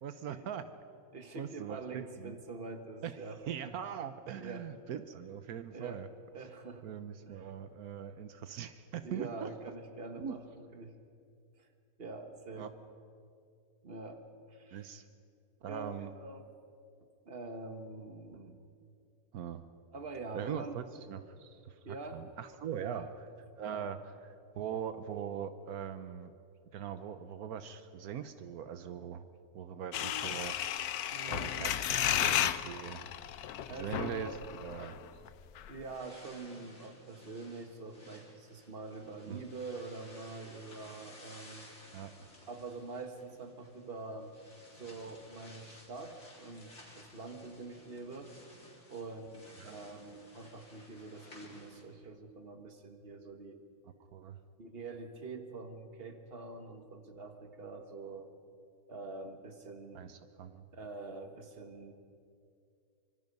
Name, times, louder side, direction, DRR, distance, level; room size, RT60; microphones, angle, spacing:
voice 1, 0.0-0.6 1.4-2.3 3.0-3.1 3.5-6.1 6.8-9.5 10.2-10.4 12.6-12.7 14.7-15.0 15.6-16.1 19.3-19.6 20.3-23.1 23.6-24.0 24.2-26.3 26.7-29.3 29.5-30.6 31.3-33.0 33.7-34.3 34.6-35.0 39.3-39.4 41.9-42.3 49.6-49.8 54.1-54.4 59.9-60.6, right 9 dB, 80° right, 10 dB, 1.3 m, -41 dB
voice 2, 1.1-3.7 4.3-4.7 5.7-6.1 6.3-6.9 7.3-7.5 9.0-10.9 11.6-11.7 12.0-12.7 13.8-15.0 15.7-16.5 17.3-18.6 19.9-20.8 21.8-22.2 22.8-23.1 23.7-24.0 31.1-31.7 33.7-34.4 35.7-41.7 42.5-44.3 44.7-48.3 48.9-53.6 54.6-58.3 58.9-60.1 60.7-61.9, right 3 dB, 40° right, 6 dB, 1.7 m, -45 dB
sound 1, 29.9-35.0 35.3-35.4 35.6-35.8, left 11 dB, 85° left, 1.2 m, -33 dB
sound 2, 35.8-51.8, left 1 dB, 50° left, 4.3 m, -57 dB
25.5 x 24.0 x 5.4 m, 2.4 s
omnidirectional pair, 1.6 m